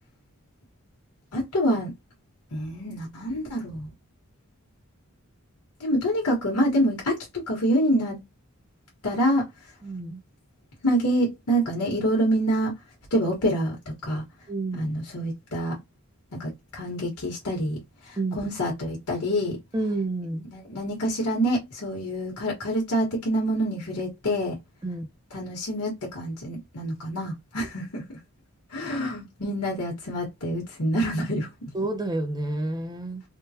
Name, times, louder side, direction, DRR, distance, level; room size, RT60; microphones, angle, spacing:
voice 1, 1.3-1.9 2.5-3.9 5.8-8.2 9.0-9.5 10.8-12.7 13.1-13.8 14.0-14.2 14.8-15.8 16.4-17.8 18.1-19.6 20.5-24.6 25.3-28.0 28.7-31.5, equal, 80° left, 1.3 m, -26 dB
voice 2, 9.8-10.2 14.5-14.9 18.2-18.4 19.7-20.5 24.8-25.0 27.6-27.7 31.7-33.2, right 2 dB, 20° right, 0.6 m, -29 dB
3.6 x 2.2 x 2.8 m
head